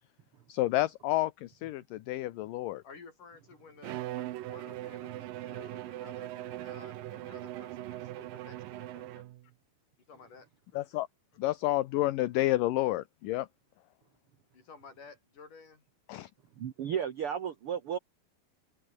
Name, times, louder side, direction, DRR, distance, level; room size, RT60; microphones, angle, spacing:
voice 1, 0.5-2.8 10.7-11.1 11.4-13.5 16.1-16.3, left 16 dB, 70° left, 2.3 m, -30 dB
voice 2, 2.8-9.2 10.1-10.8 14.5-15.8, left 5 dB, 55° left, 6.7 m, -54 dB
Bowed string instrument, 3.8-9.5, right 15 dB, 70° right, 2.5 m, -40 dB
voice 3, 16.6-18.0, right 8 dB, 90° right, 1.2 m, -33 dB
omnidirectional pair, 4.5 m